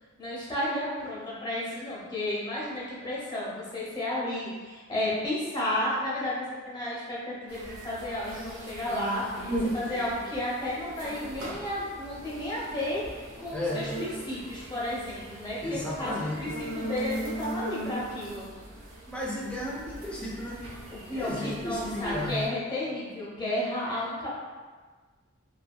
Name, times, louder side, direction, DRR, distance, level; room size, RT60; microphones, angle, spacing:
voice 1, 0.2-18.5 20.9-24.4, left 1 dB, 20° left, -7 dB, 0.8 m, -32 dB
sound 1, 7.5-22.5, right 1 dB, 75° right, 0.9 m, -39 dB
voice 2, 13.5-13.8 15.6-16.5 19.1-20.6 21.1-22.4, left 1 dB, 5° left, -4 dB, 0.4 m, -34 dB
2.7 x 2.7 x 2.2 m, 1.4 s
head